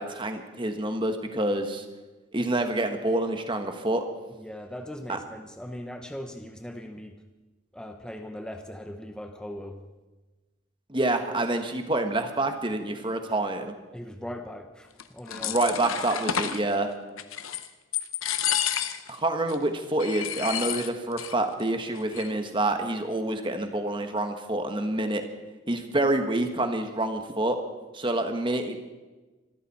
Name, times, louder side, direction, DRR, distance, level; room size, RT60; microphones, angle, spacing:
voice 1, 0.0-1.8 2.3-4.0 5.1-5.2 10.9-13.7 15.4-16.9 19.1-25.2 25.7-27.6 27.9-28.8, right 2 dB, 25° right, 6 dB, 1.3 m, -27 dB
voice 2, 4.3-7.2 7.7-9.8 13.9-15.6, left 1 dB, 5° left, 5 dB, 0.9 m, -39 dB
sound 1, 15.0-16.6 17.2-17.7 17.9-19.2 19.5-19.6 20.0-21.3 21.6-21.7 22.0-22.5, left 9 dB, 80° left, 0.9 m, -30 dB
25.0 x 13.5 x 4.3 m, 1.2 s
head